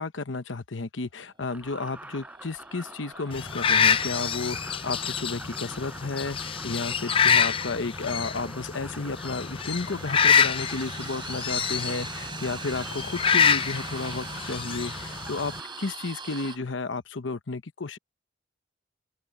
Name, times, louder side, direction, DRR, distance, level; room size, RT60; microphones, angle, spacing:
voice 1, 0.0-18.0, left 3 dB, 90° left, 1.0 m, -32 dB
sound 1, 1.4-6.6 9.0-16.6, right 5 dB, 25° right, 3.4 m, -43 dB
sound 2, 1.5-16.7, right 1 dB, 10° right, 4.3 m, -45 dB
sound 3, 3.3-15.6, left 7 dB, 30° left, 0.5 m, -26 dB
open air
head